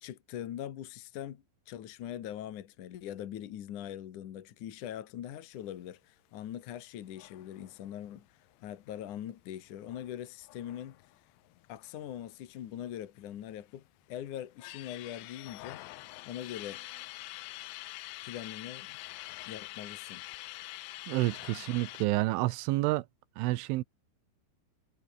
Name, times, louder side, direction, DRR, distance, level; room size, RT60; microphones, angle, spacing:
voice 1, 0.0-11.0 11.7-15.8 16.2-16.8 18.2-19.0 19.5-20.2, left 11 dB, 65° left, 2.1 m, -42 dB
sound 1, 7.1-12.3 12.5-12.6 12.9-13.8 14.3-22.1, left 20 dB, 80° left, 3.1 m, -46 dB
voice 2, 21.1-23.1 23.4-23.8, right 19 dB, 80° right, 3.2 m, -29 dB
omnidirectional pair, 5.7 m